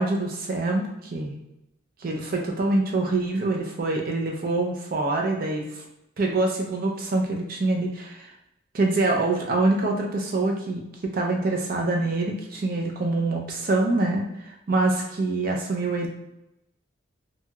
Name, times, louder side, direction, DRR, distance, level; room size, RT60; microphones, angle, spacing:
voice 1, 0.0-1.4 2.0-5.6 6.2-8.3 8.7-16.1, right 2 dB, 45° right, 1 dB, 0.4 m, -25 dB
2.8 x 2.7 x 2.2 m, 0.89 s
head